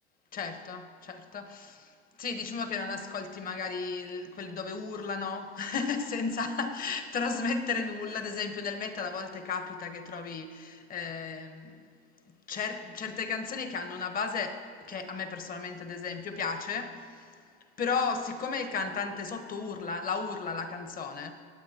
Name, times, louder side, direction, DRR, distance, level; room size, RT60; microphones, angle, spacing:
voice 1, 0.3-1.9 2.2-11.9 12.5-17.2 17.8-21.3, left 5 dB, 25° left, 1.1 m, -34 dB
21.0 x 7.7 x 2.9 m
hypercardioid pair, 105°, 31 cm